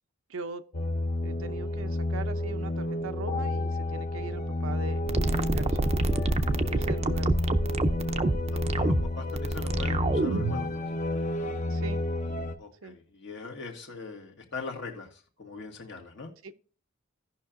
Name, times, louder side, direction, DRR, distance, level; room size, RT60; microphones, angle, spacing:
voice 1, 0.3-0.6 1.2-5.0 5.3-5.8 6.7-7.3 11.7-12.0 12.8-13.0 16.4-16.5, right 4 dB, 85° right, 0.6 m, -40 dB
sound 1, 0.7-12.5, left 1 dB, 40° left, 0.7 m, -31 dB
sound 2, 5.1-10.7, right 2 dB, 30° right, 0.5 m, -27 dB
voice 2, 8.5-10.9 12.6-16.3, left 4 dB, 65° left, 1.6 m, -41 dB
16.5 x 5.7 x 2.5 m
head